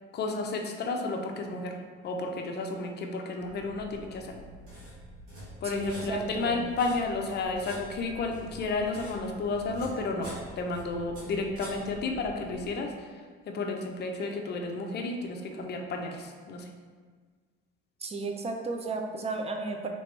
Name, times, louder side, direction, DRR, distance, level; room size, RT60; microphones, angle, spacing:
voice 1, 0.1-1.8 2.0-4.4 5.6-16.7, left 3 dB, 35° left, 3 dB, 0.5 m, -32 dB
sound 1, 3.4-12.7, equal, 65° right, 1.4 m, -46 dB
voice 2, 5.7-6.6 18.0-19.9, right 3 dB, 20° right, 3 dB, 0.4 m, -34 dB
2.9 x 2.9 x 3.3 m, 1.5 s
hypercardioid pair, 75°, 30 cm